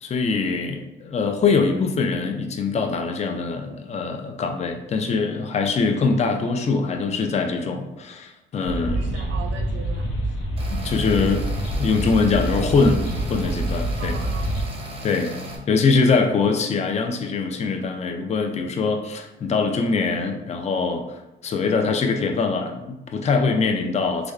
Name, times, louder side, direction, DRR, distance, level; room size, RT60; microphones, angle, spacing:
voice 1, 0.0-9.2 10.7-11.5 11.7-13.0 13.3-14.2 15.0-15.4 15.7-24.3, left 4 dB, 35° left, 4 dB, 0.4 m, -23 dB
sound 1, 8.6-14.6, right 1 dB, 85° left, 0.6 m, -26 dB
voice 2, 8.9-10.4 14.0-14.7, right 5 dB, 65° right, 4 dB, 0.5 m, -39 dB
sound 2, 10.6-15.6, equal, 30° right, 0.7 m, -36 dB
3.3 x 2.3 x 2.3 m, 0.97 s
cardioid pair, 90°, 20 cm